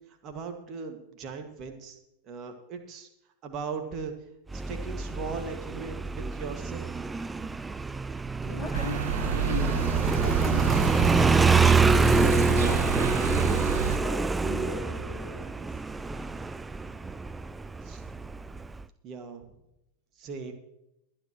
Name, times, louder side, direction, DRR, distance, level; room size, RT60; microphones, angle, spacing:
voice 1, 0.2-2.0 2.3-3.1 3.4-4.1 4.7-6.9 17.8-18.0 19.0-19.4 20.2-20.5, right 5 dB, 35° right, 5 dB, 2.0 m, -38 dB
Motorcycle, 4.5-18.8, right 4 dB, 10° right, 0.4 m, -26 dB
voice 2, 8.4-11.6 12.1-15.7, left 8 dB, 60° left, -2 dB, 3.9 m, -40 dB
sound 1, 8.7-14.0, right 8 dB, 60° right, 0.8 m, -29 dB
22.0 x 10.0 x 3.1 m, 0.86 s
figure-of-eight pair, 90°, 0 cm